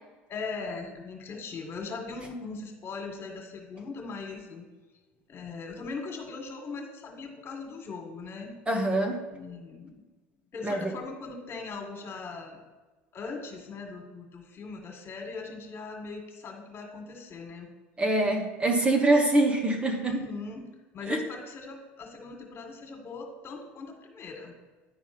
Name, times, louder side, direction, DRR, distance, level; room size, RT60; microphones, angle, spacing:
voice 1, 0.3-4.7 5.3-8.6 9.3-10.0 10.5-12.6 13.1-17.7 20.0-20.7 20.9-24.6, left 4 dB, 40° left, 3 dB, 2.0 m, -39 dB
voice 2, 8.7-9.2 10.6-10.9 18.0-20.2 21.1-21.2, right 2 dB, 20° right, 3 dB, 1.1 m, -24 dB
10.0 x 4.4 x 6.0 m, 1.3 s
hypercardioid pair, 80°, 6 cm